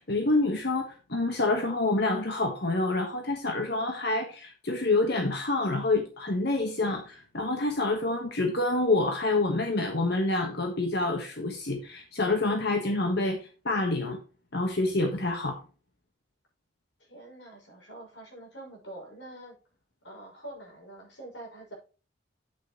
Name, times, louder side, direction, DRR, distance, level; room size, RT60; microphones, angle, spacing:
voice 1, 0.0-14.2 14.5-15.6, left 2 dB, 65° left, 3 dB, 1.5 m, -27 dB
voice 2, 17.0-19.6 20.0-21.7, right 1 dB, 80° left, -1 dB, 5.9 m, -45 dB
9.1 x 8.6 x 3.1 m, 0.34 s
head